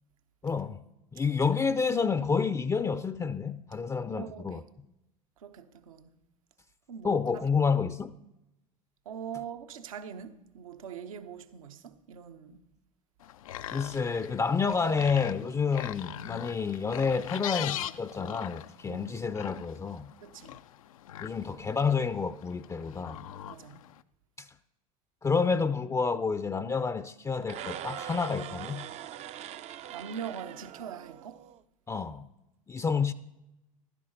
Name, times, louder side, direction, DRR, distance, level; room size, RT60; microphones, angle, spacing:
voice 1, 0.4-0.8 1.1-4.6 7.0-8.1 13.7-20.1 21.2-23.3 24.4-24.5 25.2-28.9 31.9-32.3 32.7-33.1, left 5 dB, 15° left, 0.5 m, -29 dB
voice 2, 4.1-4.6 5.4-6.1 6.9-7.4 9.1-12.6 18.9-19.3 20.2-20.6 23.5-23.8 29.9-31.4, right 8 dB, 75° right, 0.9 m, -42 dB
sound 1, 13.2-24.0, left 11 dB, 75° left, 0.5 m, -42 dB
sound 2, 27.4-31.6, right 11 dB, 40° right, 0.5 m, -42 dB
14.5 x 12.0 x 4.0 m
hypercardioid pair, 75°, 18 cm